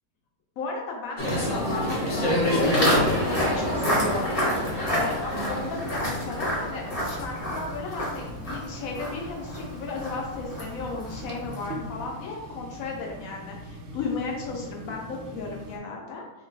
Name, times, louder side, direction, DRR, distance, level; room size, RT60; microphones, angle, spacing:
voice 1, 0.6-16.2, left 4 dB, 70° left, -1 dB, 0.9 m, -35 dB
sound 1, 1.2-7.4, left 1 dB, 45° left, 0.6 m, -28 dB
Walk footsteps, 2.6-11.8, equal, 25° left, 1.0 m, -30 dB
sound 2, 6.9-15.8, right 1 dB, 85° right, 0.6 m, -42 dB
3.0 x 2.2 x 3.8 m, 1.0 s
omnidirectional pair, 1.7 m